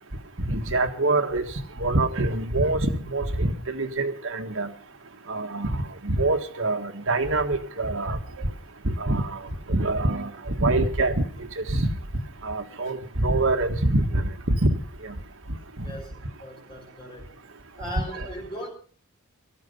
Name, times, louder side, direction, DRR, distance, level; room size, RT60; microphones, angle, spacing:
voice 1, 0.4-1.4 1.8-4.7 5.3-5.8 6.0-8.2 8.8-9.4 9.7-11.2 11.6-11.9 12.4-14.8 15.0-15.1, right 2 dB, 65° right, 5 dB, 1.7 m, -25 dB
voice 2, 15.8-17.4 17.8-18.7, equal, 25° left, -1 dB, 6.6 m, -38 dB
17.5 x 14.5 x 5.4 m, 0.44 s
head